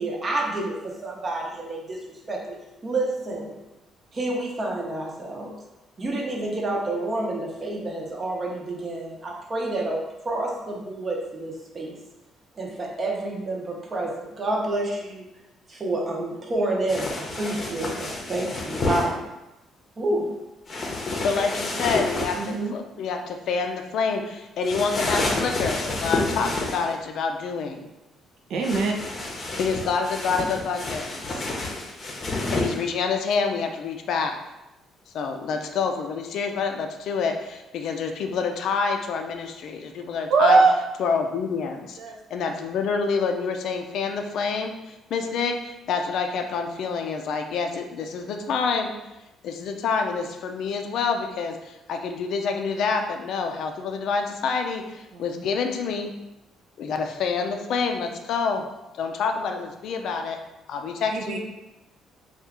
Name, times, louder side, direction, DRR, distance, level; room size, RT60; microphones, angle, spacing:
voice 1, 0.0-2.0 2.3-2.6 2.8-3.5 4.1-5.5 6.0-12.0 12.6-15.3 15.7-19.2 20.0-20.3, right 2 dB, 35° right, -1 dB, 0.7 m, -29 dB
sound 1, 16.9-19.1 20.7-22.5 24.6-26.9 28.6-32.8, left 2 dB, 35° left, 0.7 m, -29 dB
voice 2, 21.2-27.9 29.6-31.5 32.5-34.4 35.1-40.6 41.0-42.0 42.3-48.9 49.4-56.1 56.8-58.6 59.0-60.4 60.7-61.4, left 5 dB, 70° left, 4 dB, 0.4 m, -27 dB
voice 3, 22.4-22.7 28.5-28.9 40.3-40.7 42.0-42.2 55.1-55.2 61.1-61.4, right 3 dB, 70° right, 2 dB, 0.4 m, -20 dB
2.8 x 2.3 x 3.5 m, 0.97 s
cardioid pair, 100°, 0 cm